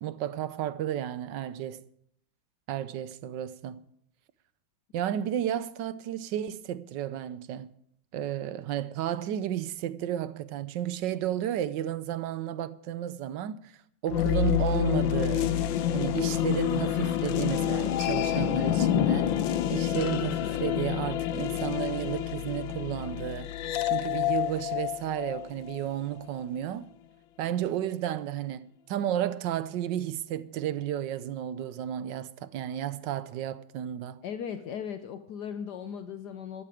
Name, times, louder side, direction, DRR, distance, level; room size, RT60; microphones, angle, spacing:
voice 1, 0.0-1.8 2.7-3.8 4.9-7.7 8.1-13.7 14.0-15.6 15.9-19.3 19.7-23.5 23.8-26.9 27.4-34.2, right 11 dB, 75° right, 1.3 m, -32 dB
sound 1, 14.1-25.9, left 11 dB, 85° left, 1.5 m, -28 dB
voice 2, 34.2-36.6, left 8 dB, 70° left, 1.3 m, -37 dB
13.5 x 12.5 x 5.0 m
omnidirectional pair, 2.0 m